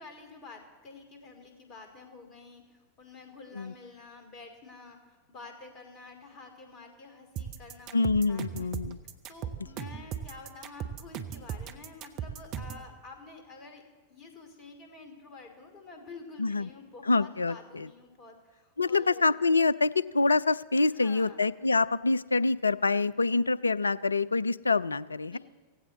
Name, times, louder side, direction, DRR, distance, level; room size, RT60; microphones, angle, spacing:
voice 1, 0.0-8.7 9.0-13.8 14.1-19.3 20.8-21.4 25.3-25.4, left 3 dB, 35° left, 5 dB, 2.7 m, -49 dB
sound 1, 7.4-12.9, right 8 dB, 40° right, 1.0 m, -37 dB
voice 2, 7.9-9.0 16.4-16.7 17.1-17.9 18.8-25.4, left 3 dB, 80° left, 19 dB, 0.3 m, -26 dB
16.5 x 16.0 x 4.1 m, 1.3 s
figure-of-eight pair, 90°, 0 cm